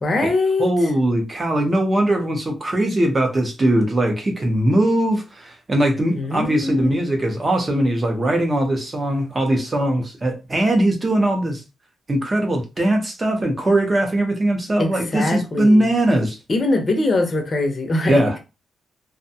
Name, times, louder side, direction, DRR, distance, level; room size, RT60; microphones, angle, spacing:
voice 1, 0.0-0.9 6.1-7.1 14.8-15.9 16.5-18.2, left 2 dB, 30° left, 0.6 m, -22 dB
voice 2, 0.6-11.6 12.1-16.4 18.1-18.4, right 1 dB, 25° right, 0.7 m, -20 dB
2.6 x 2.2 x 2.7 m
wide cardioid pair, 155°, 0 cm